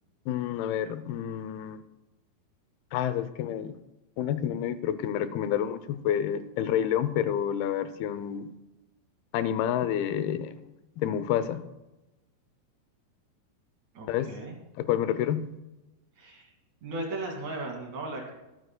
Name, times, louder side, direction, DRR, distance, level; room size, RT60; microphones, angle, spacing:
voice 1, 0.3-1.8 2.9-3.8 4.2-8.5 9.3-10.5 11.0-11.6 14.1-14.3 14.8-15.5, left 10 dB, 80° left, 13 dB, 2.6 m, -29 dB
voice 2, 14.0-14.6 16.2-16.5 16.8-18.3, right 2 dB, 50° right, 1 dB, 3.4 m, -36 dB
22.5 x 9.4 x 2.2 m, 0.99 s
omnidirectional pair, 4.5 m